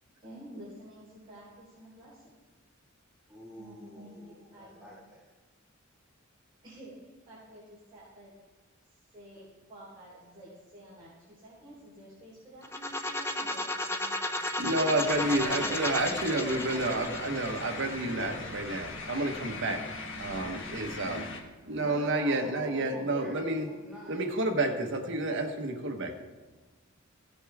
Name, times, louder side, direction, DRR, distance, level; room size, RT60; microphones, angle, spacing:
voice 1, 0.2-2.3 3.5-4.9 6.6-8.3 8.9-14.8 21.6-22.2, right 1 dB, 25° right, -10 dB, 4.2 m, -50 dB
voice 2, 3.3-5.2 16.0-16.9 17.8-18.5 21.7-24.9, equal, 5° right, -7 dB, 2.0 m, -47 dB
sound 1, 12.6-18.4, left 1 dB, 10° left, 0.6 m, -34 dB
voice 3, 14.6-21.3 21.7-23.7 24.1-26.2, right 2 dB, 60° right, 4 dB, 1.2 m, -30 dB
sound 2, 15.0-21.4, left 3 dB, 60° left, 1.4 m, -40 dB
16.0 x 8.3 x 3.6 m, 1.3 s
head